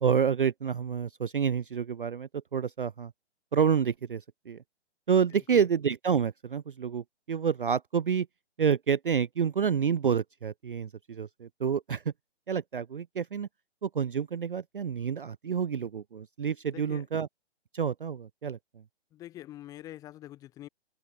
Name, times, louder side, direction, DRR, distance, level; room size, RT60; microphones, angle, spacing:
voice 1, 0.0-3.1 3.5-4.6 5.1-8.3 8.6-12.0 12.5-13.5 13.8-17.3 17.7-18.6, right 7 dB, 50° right, 0.4 m, -28 dB
voice 2, 5.3-5.6 16.7-17.1 19.1-20.7, left 13 dB, 10° left, 1.2 m, -46 dB
open air
figure-of-eight pair, 135°, 35 cm